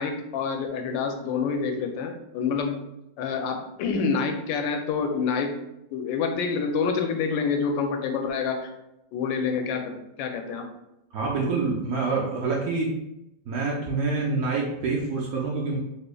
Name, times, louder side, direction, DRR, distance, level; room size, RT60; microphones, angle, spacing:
voice 1, 0.0-2.8 3.2-5.5 5.9-8.7 9.1-10.7, left 5 dB, 85° left, 4 dB, 1.3 m, -27 dB
voice 2, 11.1-13.0 13.5-15.8, right 3 dB, 70° right, -3 dB, 0.9 m, -26 dB
4.2 x 2.8 x 2.2 m, 0.88 s
omnidirectional pair, 2.0 m